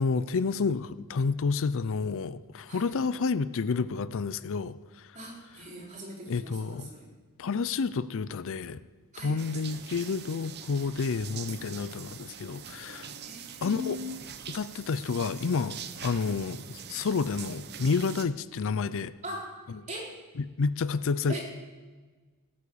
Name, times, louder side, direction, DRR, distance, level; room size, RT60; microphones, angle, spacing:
voice 1, 0.0-5.1 6.3-6.9 7.4-8.8 9.2-13.1 13.6-14.0 14.5-19.1 20.4-21.4, left 4 dB, 60° left, 15 dB, 0.5 m, -30 dB
voice 2, 5.1-7.1 9.1-9.4 13.2-14.1 19.2-19.6 19.9-20.1 21.3-21.4, left 1 dB, 35° right, -3 dB, 4.2 m, -40 dB
sound 1, 9.4-18.3, right 8 dB, 50° right, 0.8 m, -43 dB
17.5 x 8.8 x 7.0 m, 1.3 s
head